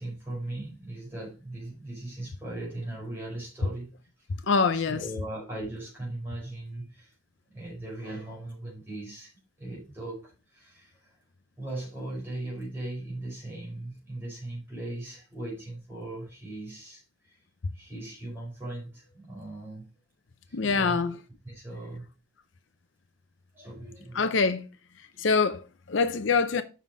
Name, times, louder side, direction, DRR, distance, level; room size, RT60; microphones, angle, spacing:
voice 1, 0.0-3.9 4.7-7.1 7.5-9.3 9.6-11.2 11.6-17.4 17.7-19.9 20.5-21.0 21.4-22.1 23.5-24.3, right 1 dB, 10° right, 5.0 m, -39 dB
voice 2, 4.5-5.0 20.5-21.1 24.1-24.7 25.2-26.6, left 4 dB, 65° left, 0.6 m, -24 dB
7.2 x 5.7 x 4.8 m
head